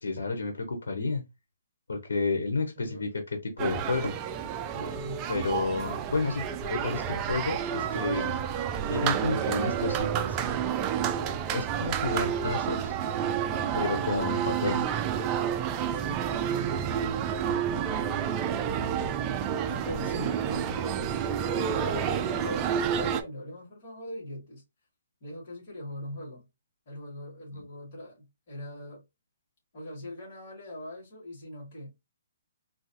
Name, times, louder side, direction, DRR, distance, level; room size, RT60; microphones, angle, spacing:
voice 1, 0.0-1.2 1.9-4.1 5.3-8.4 8.9-10.4 11.5-12.9 13.7-14.8 27.5-27.6, left 3 dB, 90° left, 0.8 m, -31 dB
sound 1, 3.6-23.2, right 8 dB, 20° right, 0.4 m, -29 dB
voice 2, 4.6-5.2 15.9-16.3 19.7-21.3 21.7-24.6 25.2-26.4 26.9-29.0 29.7-31.9, left 1 dB, 45° left, 2.2 m, -41 dB
3.8 x 2.3 x 2.7 m
hypercardioid pair, 160°, 0 cm